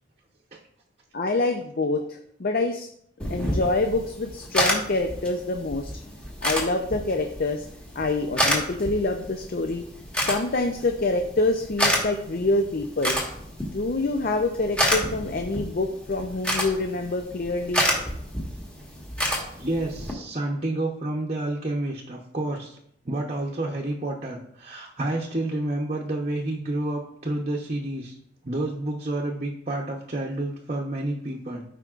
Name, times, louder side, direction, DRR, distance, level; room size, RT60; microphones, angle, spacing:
voice 1, 1.1-2.9 3.3-5.9 6.4-7.7 8.0-9.8 10.3-13.2 13.7-17.9, left 2 dB, 50° left, 5 dB, 0.6 m, -26 dB
sound 1, 3.2-20.1, equal, 5° left, 1.5 m, -29 dB
voice 2, 19.6-22.8 23.0-28.2 28.4-31.6, right 1 dB, 35° right, -1 dB, 0.8 m, -29 dB
13.5 x 5.1 x 2.5 m, 0.70 s
head